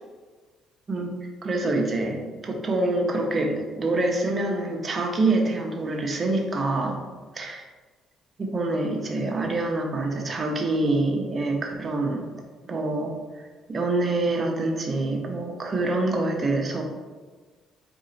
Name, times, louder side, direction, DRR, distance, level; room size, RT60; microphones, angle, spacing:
voice 1, 1.4-7.0 7.3-7.6 8.4-12.3 12.6-13.2 13.7-16.8, right 2 dB, 30° right, 2 dB, 0.7 m, -26 dB
4.1 x 2.7 x 3.8 m, 1.4 s
cardioid pair, 115°, 0 cm